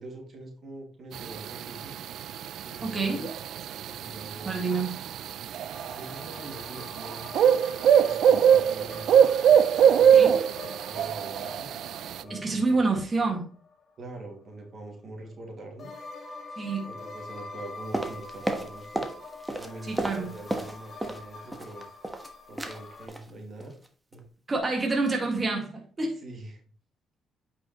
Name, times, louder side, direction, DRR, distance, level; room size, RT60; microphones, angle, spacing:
voice 1, 0.0-2.0 2.6-3.3 3.9-4.6 5.8-7.2 7.8-9.3 9.9-11.7 12.2-12.9 14.0-15.9 16.9-19.1 19.6-21.9 22.5-23.7 24.1-24.2 26.2-26.6, right 2 dB, 50° right, 2 dB, 2.3 m, -44 dB
sound 1, 1.1-12.2, right 8 dB, 75° right, 0.4 m, -23 dB
voice 2, 2.8-3.3 4.4-4.9 10.1-10.4 12.3-13.4 16.6-16.9 19.9-20.3 24.5-26.2, right 3 dB, 30° right, 1 dB, 2.0 m, -27 dB
sound 2, 5.7-14.3 15.8-23.1, left 3 dB, 45° left, 1.5 m, -46 dB
sound 3, 17.9-19.2 19.4-21.2 21.5-22.3 22.6-22.8 23.1-23.3 23.6-23.9 24.1-24.2, right 1 dB, 10° right, 1.3 m, -32 dB
8.9 x 5.6 x 3.1 m, 0.42 s
cardioid pair, 90°, 0 cm